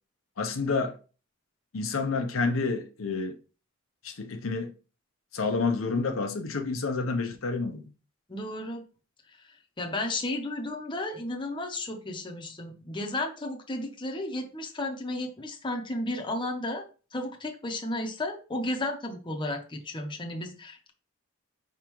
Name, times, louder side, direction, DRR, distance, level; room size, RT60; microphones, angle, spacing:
voice 1, 0.4-1.0 1.7-3.4 4.0-4.7 5.3-7.9, left 4 dB, 80° left, 0.7 m, -29 dB
voice 2, 8.3-8.8 9.3-16.8 17.1-20.9, left 1 dB, 25° left, 0.7 m, -33 dB
4.9 x 3.6 x 3.0 m
head